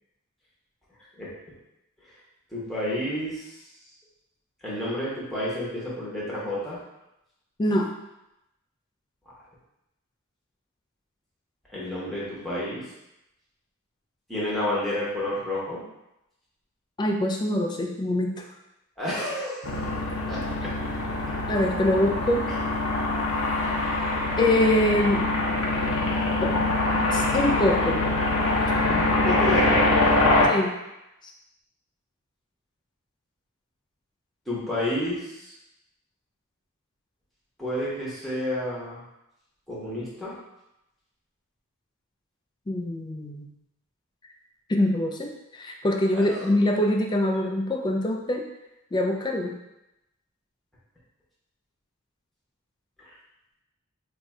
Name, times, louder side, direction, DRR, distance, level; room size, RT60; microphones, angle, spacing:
voice 1, 2.5-3.5 4.6-6.8 11.7-12.8 14.3-15.8 19.0-19.8 20.3-20.4 23.6-24.3 28.8-30.4 34.5-35.5 37.6-39.0 39.7-40.3 46.1-46.5, left 1 dB, ahead, -8 dB, 0.8 m, -30 dB
voice 2, 7.6-7.9 17.0-18.5 21.5-22.5 24.4-25.3 26.4-26.7 27.1-28.0 30.5-30.8 42.7-43.5 44.7-48.4 48.9-49.6, left 1 dB, 20° left, 2 dB, 0.3 m, -24 dB
sound 1, 19.6-30.5, left 2 dB, 75° left, 0.7 m, -24 dB
2.6 x 2.4 x 4.1 m, 0.90 s
head